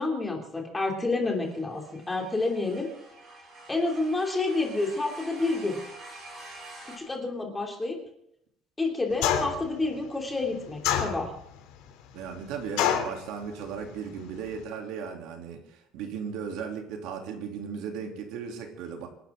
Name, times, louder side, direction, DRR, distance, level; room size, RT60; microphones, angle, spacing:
voice 1, 0.0-2.9 3.7-5.8 6.8-8.0 8.8-11.4, left 3 dB, 10° left, 1 dB, 2.9 m, -29 dB
sound 1, 1.2-7.0, right 2 dB, 30° right, 6.5 m, -47 dB
sound 2, 9.2-9.7 10.8-11.5 12.8-13.2, left 9 dB, 85° left, 3.1 m, -25 dB
voice 2, 12.1-19.1, right 6 dB, 70° right, 3 dB, 3.1 m, -36 dB
26.5 x 12.0 x 3.8 m, 0.75 s
cardioid pair, 180°, 0 cm